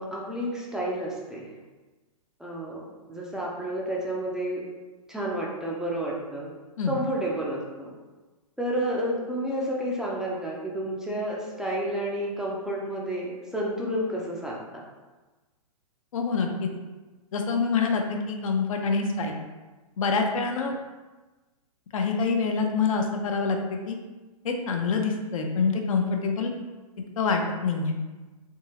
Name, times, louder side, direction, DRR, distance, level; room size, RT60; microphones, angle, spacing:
voice 1, 0.0-1.5 2.4-2.8 3.1-4.6 5.1-6.5 6.9-7.9 8.6-14.8, right 1 dB, 5° right, -4 dB, 0.4 m, -30 dB
voice 2, 16.1-16.7 17.3-19.3 20.0-20.7 21.9-23.6 23.9-24.0 24.4-26.5 27.2-27.9, left 4 dB, 65° left, 3 dB, 0.6 m, -26 dB
3.6 x 3.0 x 2.8 m, 1.2 s
hypercardioid pair, 130°, 19 cm